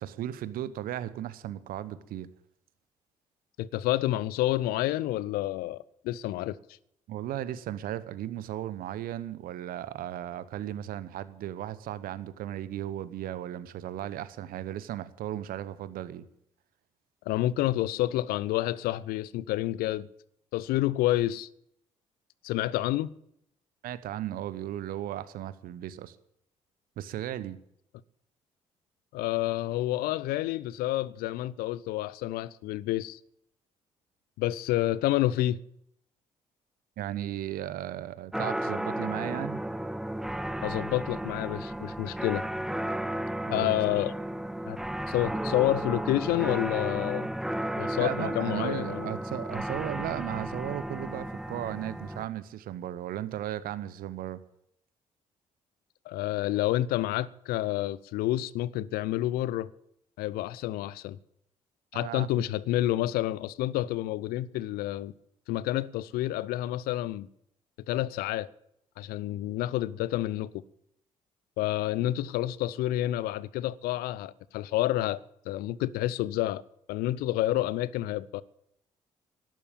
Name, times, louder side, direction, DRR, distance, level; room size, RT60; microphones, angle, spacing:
voice 1, 0.0-2.3 7.1-16.3 23.8-26.2 27.0-27.6 37.0-39.6 43.5-43.8 48.0-54.4 61.9-62.4 72.0-72.1, right 12 dB, 60° right, 0.9 m, -36 dB
voice 2, 3.6-6.6 17.3-20.1 20.5-21.5 22.4-23.1 29.1-33.2 34.4-35.6 40.6-42.4 43.5-44.1 44.7-44.8 45.1-47.3 47.8-49.1 56.1-59.7 60.2-61.2 61.9-65.1 65.5-67.3 67.9-68.5 69.0-70.6 71.6-75.2 75.5-76.6 76.9-78.4, left 15 dB, 65° left, 0.7 m, -29 dB
sound 1, 38.3-52.3, right 1 dB, ahead, 0.8 m, -33 dB
12.0 x 11.0 x 8.8 m
figure-of-eight pair, 45°, 16 cm